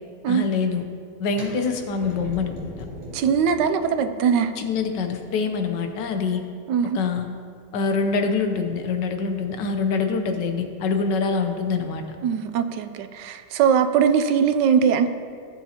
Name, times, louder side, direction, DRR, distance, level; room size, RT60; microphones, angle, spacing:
voice 1, 0.3-0.8 1.2-2.7 4.6-6.4 6.9-7.3 7.7-12.0, left 4 dB, 80° left, 6 dB, 1.4 m, -25 dB
sound 1, 1.3-7.1, equal, 15° right, 2.7 m, -42 dB
voice 2, 3.1-4.5 6.7-7.0 12.2-15.1, right 7 dB, 80° right, 9 dB, 1.2 m, -21 dB
16.0 x 7.0 x 2.9 m, 2.2 s
omnidirectional pair, 1.9 m